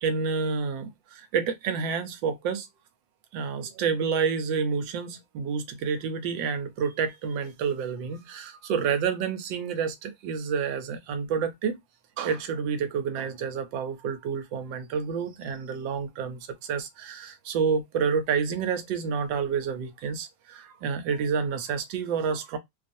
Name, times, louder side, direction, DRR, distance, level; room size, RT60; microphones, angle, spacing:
voice 1, 0.0-2.7 3.3-11.8 12.2-22.6, right 6 dB, 85° right, 1.4 m, -29 dB
3.0 x 2.4 x 2.5 m
omnidirectional pair, 2.0 m